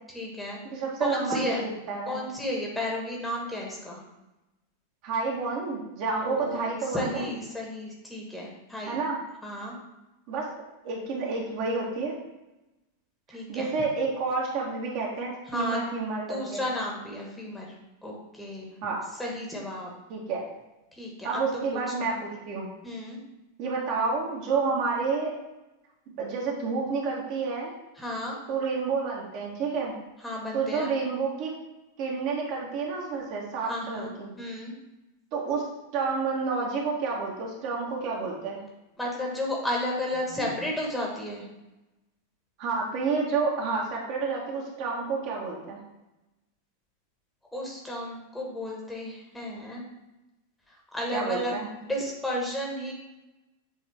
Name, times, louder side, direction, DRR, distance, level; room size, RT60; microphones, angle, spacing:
voice 1, 0.1-1.7 2.1-4.0 6.2-9.0 9.4-9.7 13.3-13.7 15.5-15.8 16.3-17.7 18.0-18.7 19.2-19.9 20.9-22.1 22.8-23.2 28.0-28.4 30.2-30.9 33.6-34.7 39.0-41.5 47.5-49.8 50.9-51.6 51.8-52.9, left 1 dB, 5° left, -2 dB, 1.4 m, -33 dB
voice 2, 0.7-2.2 5.0-7.2 8.9-9.2 10.3-10.5 10.8-12.1 13.3-16.6 18.8-19.0 20.1-20.4 21.2-22.7 23.6-25.3 26.2-27.7 28.5-29.9 30.5-31.5 32.0-34.3 35.3-35.6 35.9-38.6 40.4-40.6 42.6-45.8 51.1-51.7, right 4 dB, 45° right, -2 dB, 1.4 m, -29 dB
7.7 x 3.8 x 3.4 m, 0.98 s
figure-of-eight pair, 90°, 0 cm